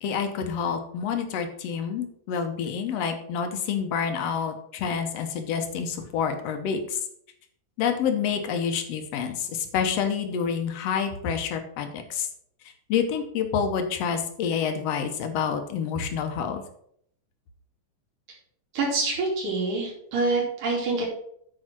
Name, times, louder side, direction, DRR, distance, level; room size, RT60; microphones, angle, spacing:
voice 1, 0.0-6.8 7.8-12.3 12.9-16.6, left 7 dB, 65° left, 6 dB, 1.8 m, -28 dB
voice 2, 18.7-21.1, right 3 dB, 80° right, -2 dB, 4.4 m, -26 dB
9.0 x 4.8 x 6.1 m, 0.68 s
omnidirectional pair, 3.7 m